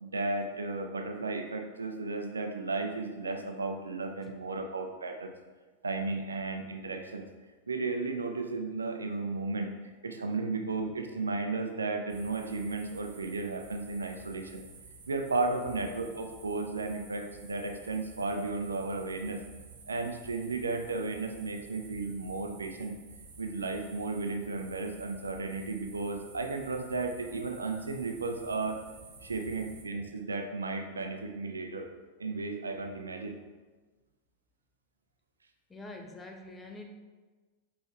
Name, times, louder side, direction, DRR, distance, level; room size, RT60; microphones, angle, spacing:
voice 1, 0.0-5.3 5.8-7.3 7.7-9.7 10.0-14.6 15.1-19.4 19.9-22.9 23.4-28.8 29.2-31.9 32.2-33.4, right 3 dB, 75° right, 5 dB, 0.6 m, -34 dB
sound 1, 12.1-29.8, right 4 dB, 55° right, 1.1 m, -52 dB
voice 2, 35.7-36.9, left 2 dB, 15° left, 3 dB, 0.8 m, -45 dB
5.5 x 4.3 x 4.5 m, 1.3 s
figure-of-eight pair, 90°, 0 cm